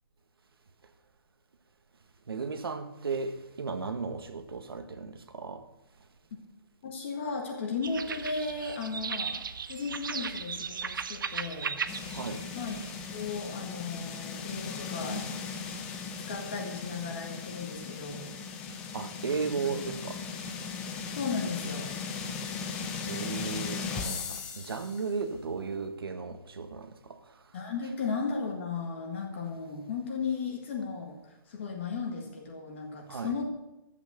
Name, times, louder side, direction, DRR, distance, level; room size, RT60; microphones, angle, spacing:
voice 1, 2.3-5.6 12.1-12.4 18.9-20.2 23.1-27.2 33.1-33.3, right 4 dB, 90° right, 1.5 m, -35 dB
voice 2, 6.8-9.4 9.7-11.8 12.5-12.8 13.1-15.3 16.3-18.3 21.1-22.0 27.5-33.4, left 4 dB, 30° left, 1.6 m, -35 dB
sound 1, 7.8-13.4, right 6 dB, 65° right, 0.8 m, -37 dB
sound 2, 11.9-25.1, left 5 dB, 5° left, 0.5 m, -38 dB
12.5 x 8.3 x 6.6 m
hypercardioid pair, 175°, 12 cm